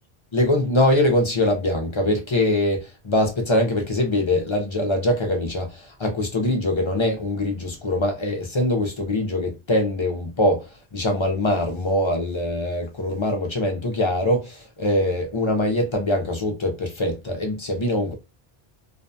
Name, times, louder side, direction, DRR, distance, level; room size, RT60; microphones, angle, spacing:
voice 1, 0.3-18.1, left 1 dB, 40° left, 0.4 m, -23 dB
2.5 x 2.2 x 2.5 m
omnidirectional pair, 1.0 m